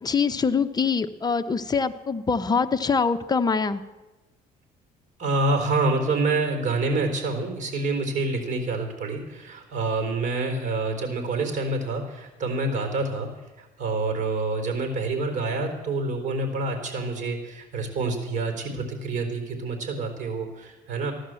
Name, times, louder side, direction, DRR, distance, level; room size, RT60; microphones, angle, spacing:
voice 1, 0.0-3.8, left 5 dB, 25° left, 9 dB, 0.8 m, -24 dB
voice 2, 5.2-13.3 13.6-21.1, right 3 dB, 45° right, 5 dB, 4.1 m, -27 dB
15.5 x 11.5 x 7.7 m, 1.1 s
cardioid pair, 110°, 17 cm